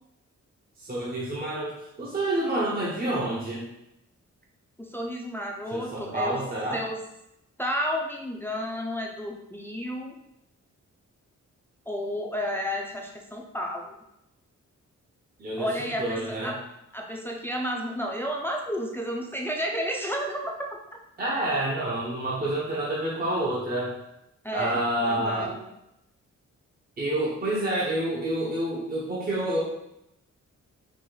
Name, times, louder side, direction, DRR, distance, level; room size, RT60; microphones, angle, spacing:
voice 1, 0.8-3.7 5.7-6.8 15.4-16.5 21.2-23.9 24.5-25.5 27.0-29.6, right 1 dB, 30° right, -5 dB, 0.9 m, -28 dB
voice 2, 4.8-6.4 6.7-7.0 7.6-10.1 11.9-14.0 15.6-16.6 16.9-20.5 24.4-25.6, equal, 5° left, -1 dB, 0.5 m, -31 dB
4.9 x 2.5 x 3.8 m, 0.84 s
wide cardioid pair, 130°, 30 cm